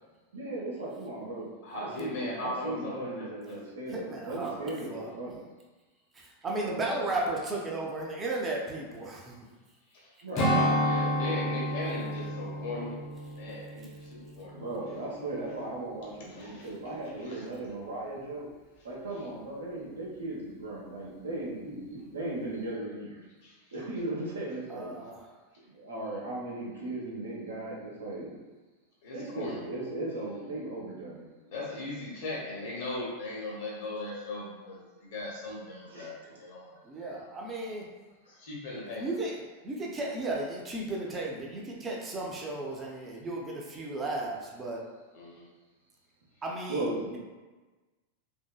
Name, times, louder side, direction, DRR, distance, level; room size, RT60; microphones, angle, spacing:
voice 1, 0.3-5.4 6.6-7.0 10.2-10.5 14.5-18.5 18.8-23.2 23.7-24.9 25.7-28.4 29.1-31.2 35.9-36.1 46.7-47.2, right 2 dB, 70° right, -5 dB, 0.8 m, -37 dB
voice 2, 1.6-3.6 10.3-13.0 13.4-14.7 16.3-16.7 17.2-17.5 23.4-23.5 29.0-29.6 31.5-37.2 38.3-39.1 45.1-45.4, left 2 dB, 50° left, -4 dB, 0.9 m, -38 dB
voice 3, 3.9-5.1 6.2-9.4 24.7-25.3 36.8-37.9 38.9-44.8 46.4-46.9, right 2 dB, 20° right, -2 dB, 0.6 m, -35 dB
Strum, 10.4-15.1 15.4-15.7, equal, 25° left, 0.6 m, -31 dB
2.9 x 2.7 x 2.2 m, 1.3 s
figure-of-eight pair, 90°, 0 cm